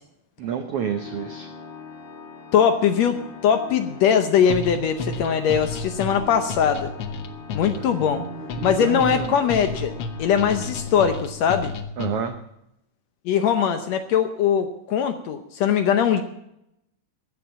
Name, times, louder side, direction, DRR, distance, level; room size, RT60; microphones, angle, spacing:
voice 1, 0.4-1.5 7.8-9.4 12.0-12.3, right 8 dB, 85° right, 7 dB, 1.3 m, -30 dB
Organ, 0.7-11.6, left 5 dB, 45° left, 1.6 m, -41 dB
voice 2, 2.5-6.9 7.5-8.2 8.6-9.9 10.2-11.7 13.2-16.2, left 8 dB, 70° left, 8 dB, 1.7 m, -21 dB
sound 1, 4.5-12.4, left 3 dB, 85° left, 1.2 m, -32 dB
14.0 x 8.3 x 7.2 m, 0.81 s
omnidirectional pair, 3.9 m